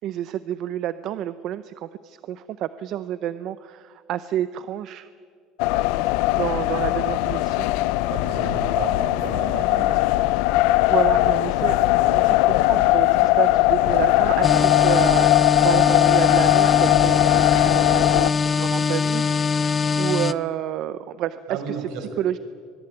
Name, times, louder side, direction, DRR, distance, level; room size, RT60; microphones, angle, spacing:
voice 1, 0.0-5.1 6.3-7.7 10.9-19.7 20.0-21.4 22.2-22.4, right 11 dB, 45° right, 13 dB, 0.7 m, -29 dB
sound 1, 5.6-18.3, left 17 dB, 75° left, 0.6 m, -19 dB
voice 2, 8.1-10.2 21.5-22.1, right 5 dB, 65° right, 8 dB, 5.0 m, -33 dB
sound 2, 14.4-20.3, left 5 dB, 20° left, 0.6 m, -22 dB
24.0 x 22.0 x 10.0 m, 2.1 s
cardioid pair, 170°, 0 cm